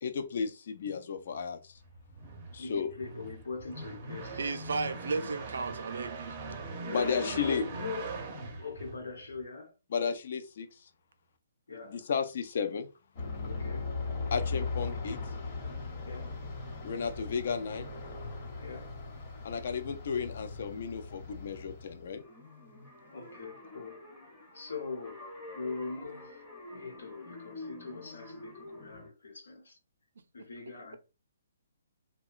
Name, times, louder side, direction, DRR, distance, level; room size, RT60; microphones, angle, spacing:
voice 1, 0.0-1.7 2.5-2.9 6.9-7.6 9.9-10.7 11.9-12.9 14.3-15.2 16.8-17.9 19.4-22.2, left 6 dB, 50° left, 0.4 m, -33 dB
sound 1, 1.8-9.4, right 3 dB, 25° right, 0.5 m, -42 dB
voice 2, 2.6-4.4 4.8-5.3 6.8-8.1 8.5-9.7 11.7-12.1 13.4-14.0 16.0-16.4 18.6-19.0 23.1-24.1 24.5-25.2 25.5-26.4 26.7-29.8 30.3-31.0, left 4 dB, 85° left, 1.0 m, -41 dB
voice 3, 4.4-6.4, right 4 dB, 80° right, 0.4 m, -34 dB
Aircraft, 13.2-22.2, left 4 dB, 30° left, 1.0 m, -38 dB
sound 2, 22.0-29.1, left 2 dB, 10° left, 0.7 m, -48 dB
2.8 x 2.2 x 2.3 m
hypercardioid pair, 170°, 0 cm